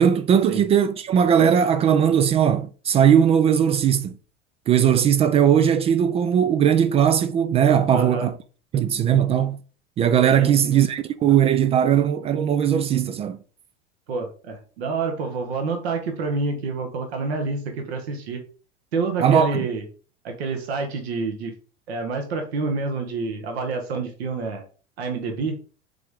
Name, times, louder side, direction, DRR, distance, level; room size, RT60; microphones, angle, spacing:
voice 1, 0.0-4.1 4.7-8.3 8.7-9.6 10.0-13.4 19.2-19.6, right 8 dB, 20° right, 0.3 m, -19 dB
voice 2, 7.9-8.3 10.4-10.8 14.1-18.4 18.9-19.8 20.2-21.5 21.9-24.6 25.0-25.6, right 4 dB, 65° right, 1.3 m, -28 dB
7.5 x 3.7 x 3.6 m
figure-of-eight pair, 80°, 34 cm